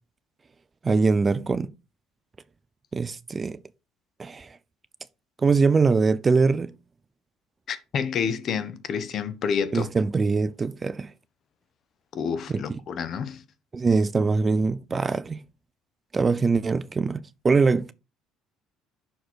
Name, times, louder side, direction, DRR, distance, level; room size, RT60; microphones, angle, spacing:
voice 1, 0.8-1.7 2.9-3.6 4.2-4.5 5.4-6.7 9.7-11.1 12.5-12.6 13.7-15.4 16.1-17.9, right 4 dB, 25° right, 0.4 m, -22 dB
voice 2, 7.7-9.9 12.1-13.4, left 6 dB, 50° left, 1.1 m, -29 dB
6.2 x 4.5 x 4.5 m
supercardioid pair, 95°, 0 cm